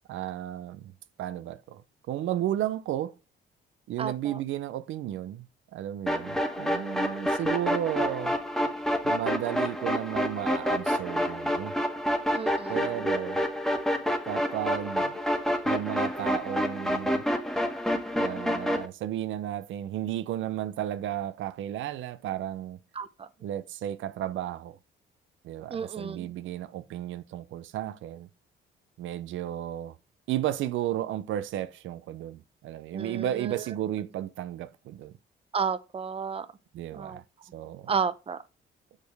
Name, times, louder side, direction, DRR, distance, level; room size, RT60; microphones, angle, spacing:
voice 1, 0.1-0.9 1.2-1.8 2.1-3.2 3.9-5.4 5.7-8.4 9.0-11.7 12.7-13.4 14.2-15.2 15.6-17.2 18.1-22.8 23.4-24.8 25.4-28.3 29.0-29.9 30.3-35.1 36.7-37.2 37.5-37.9, right 12 dB, 75° right, 0.5 m, -33 dB
voice 2, 4.0-4.4 12.3-12.8 23.0-23.3 25.7-26.3 32.9-33.5 35.5-36.5 36.9-37.2 37.9-38.4, right 6 dB, 30° right, 0.6 m, -32 dB
sound 1, 6.1-18.9, equal, ahead, 1.4 m, -28 dB
6.3 x 5.0 x 3.4 m
cardioid pair, 90°, 20 cm